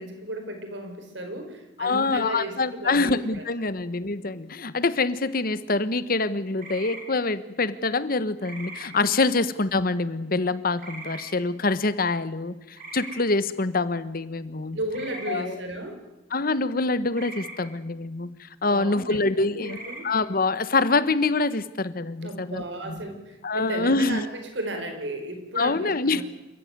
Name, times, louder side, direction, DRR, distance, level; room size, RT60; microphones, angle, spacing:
voice 1, 0.0-3.7 14.7-16.0 18.7-20.1 22.2-26.2, right 1 dB, 75° right, 6 dB, 4.8 m, -34 dB
voice 2, 1.8-14.8 15.3-15.6 16.3-19.8 20.0-23.0 23.4-24.2 25.6-26.2, left 3 dB, 50° left, 15 dB, 1.1 m, -25 dB
sound 1, 6.6-7.0 8.4-8.9 10.8-11.3 12.7-13.2 14.9-15.4 17.1-17.5 19.6-20.0, right 2 dB, 50° right, 5.6 m, -39 dB
28.0 x 14.5 x 9.5 m, 1.0 s
head